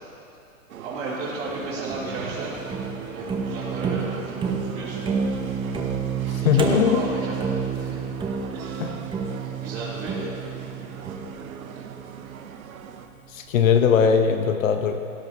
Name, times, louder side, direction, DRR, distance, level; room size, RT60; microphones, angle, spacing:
sound 1, 0.7-13.1, right 7 dB, 80° right, 1.2 m, -40 dB
voice 1, 0.8-2.5 3.0-5.0 6.2-8.0 8.5-8.8 9.5-10.3, right 3 dB, 45° right, -10 dB, 3.8 m, -34 dB
sound 2, 1.5-12.7, right 5 dB, 10° right, 0.9 m, -30 dB
voice 2, 6.4-7.0 8.8-8.9 13.3-14.9, left 7 dB, 70° left, 6 dB, 1.2 m, -19 dB
17.0 x 16.5 x 3.1 m, 2.7 s
hypercardioid pair, 135°, 42 cm